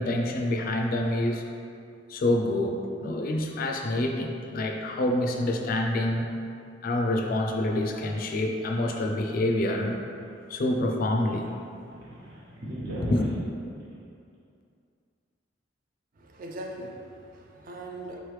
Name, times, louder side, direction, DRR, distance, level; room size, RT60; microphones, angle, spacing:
voice 1, 0.0-1.4 2.1-6.3 6.8-10.0 10.5-11.5 13.0-13.3, left 1 dB, 50° left, 2 dB, 0.4 m, -27 dB
sound 1, 9.8-10.7 10.9-11.0 11.3-13.4, right 1 dB, 65° right, 0.9 m, -36 dB
voice 2, 16.2-18.2, right 1 dB, 45° right, 1 dB, 0.4 m, -40 dB
4.0 x 3.1 x 3.2 m, 2.4 s
head